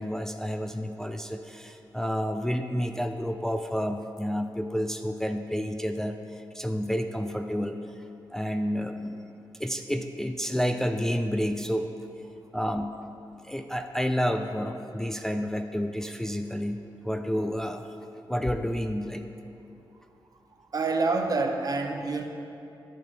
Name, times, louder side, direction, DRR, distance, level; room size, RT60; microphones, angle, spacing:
voice 1, 0.0-8.0 8.3-11.9 12.5-12.9 13.4-17.9 18.3-19.2, equal, 5° left, 6 dB, 0.4 m, -30 dB
voice 2, 20.5-22.2, right 3 dB, 50° right, 4 dB, 0.8 m, -27 dB
9.7 x 7.4 x 4.0 m, 2.8 s
cardioid pair, 85°, 8 cm